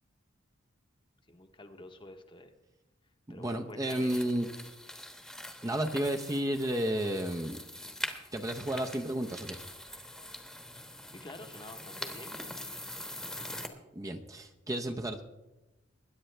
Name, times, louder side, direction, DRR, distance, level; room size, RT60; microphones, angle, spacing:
voice 1, 1.3-2.5 3.3-4.2 11.1-12.4, left 1 dB, 25° left, 6 dB, 1.0 m, -48 dB
voice 2, 3.3-4.5 5.6-7.6 8.3-9.6 13.9-15.2, right 1 dB, 15° right, 4 dB, 0.6 m, -32 dB
sound 1, 3.9-13.7, left 1 dB, ahead, 1.1 m, -43 dB
21.0 x 10.0 x 3.3 m, 1.0 s
head